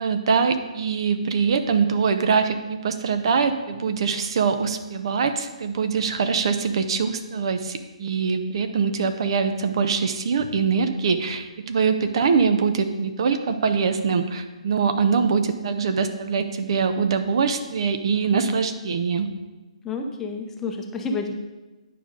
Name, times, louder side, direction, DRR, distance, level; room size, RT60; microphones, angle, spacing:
voice 1, 0.0-19.3, right 5 dB, 50° right, 8 dB, 0.6 m, -23 dB
voice 2, 19.8-21.3, left 3 dB, 10° left, 3 dB, 0.7 m, -29 dB
10.0 x 5.0 x 3.8 m, 1.1 s
figure-of-eight pair, 140°, 4 cm